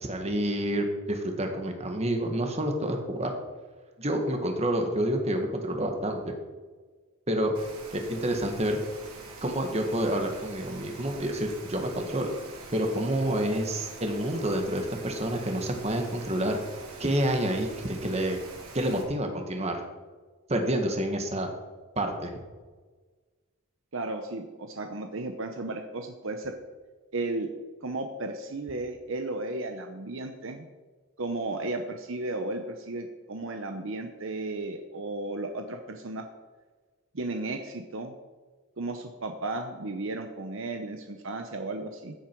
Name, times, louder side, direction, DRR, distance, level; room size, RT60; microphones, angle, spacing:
voice 1, 0.0-3.3 4.0-6.2 7.3-7.5 7.9-8.8 9.4-12.3 12.7-16.6 17.0-18.4 18.7-19.8 20.5-21.5 22.0-22.4, right 1 dB, 30° right, 4 dB, 1.7 m, -28 dB
Rain, 7.5-19.0, right 3 dB, 85° right, 3.0 m, -45 dB
voice 2, 23.9-26.5 27.1-27.5 27.8-30.7 31.2-36.3 37.1-38.2 38.8-42.1, right 2 dB, 60° right, 5 dB, 0.9 m, -34 dB
15.0 x 8.5 x 4.7 m, 1.4 s
head